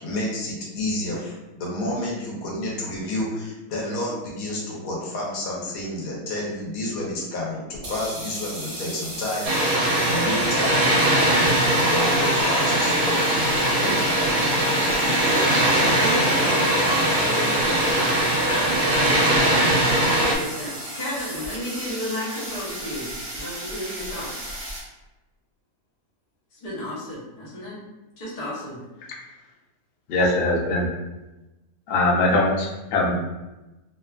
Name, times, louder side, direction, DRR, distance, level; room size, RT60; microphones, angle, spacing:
voice 1, 0.0-10.9 11.9-13.2 13.8-14.1, left 1 dB, 70° left, -4 dB, 1.2 m, -30 dB
sound 1, 7.7-24.8, right 1 dB, 45° right, 0.6 m, -35 dB
Water, 9.4-20.4, right 1 dB, 80° right, 1.1 m, -20 dB
voice 2, 15.8-16.7 17.2-18.2 18.5-19.4 20.0-24.6 26.5-27.7 28.2-28.8, left 1 dB, 30° left, -8 dB, 0.7 m, -33 dB
voice 3, 30.1-30.9 31.9-33.1, left 2 dB, 85° left, -3 dB, 0.5 m, -21 dB
2.9 x 2.3 x 2.3 m, 1.0 s
omnidirectional pair, 1.6 m